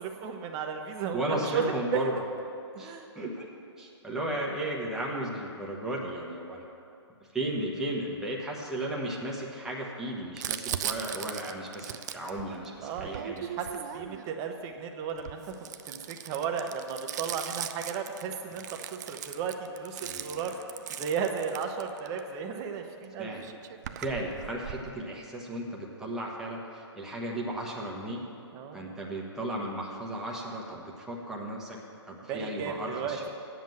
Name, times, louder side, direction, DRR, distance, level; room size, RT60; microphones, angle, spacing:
voice 1, 0.0-2.2 2.7-3.1 12.8-15.4 15.9-18.6 18.9-20.5 20.9-23.3 28.5-28.8 32.2-33.2, right 6 dB, 25° right, 4 dB, 0.9 m, -34 dB
voice 2, 1.1-2.1 2.8-3.5 3.8-6.6 7.3-13.4 20.0-20.5 23.2-23.5 24.0-28.2 28.7-31.8 32.1-33.3, right 1 dB, 5° right, -4 dB, 1.1 m, -35 dB
Crumpling crinkling, 10.4-14.4 15.1-22.2 23.0-23.1 23.3-24.9, right 10 dB, 40° right, 0.4 m, -39 dB
9.1 x 7.5 x 7.8 m, 2.6 s
hypercardioid pair, 150°, 14 cm